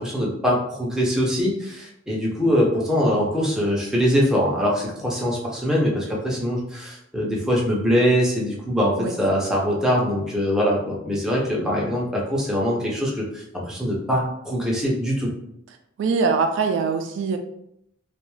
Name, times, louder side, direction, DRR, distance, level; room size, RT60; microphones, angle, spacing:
voice 1, 0.0-15.3, equal, 5° right, -4 dB, 0.5 m, -23 dB
voice 2, 16.0-17.4, right 4 dB, 70° right, 5 dB, 0.3 m, -22 dB
2.4 x 2.2 x 3.1 m, 0.74 s
head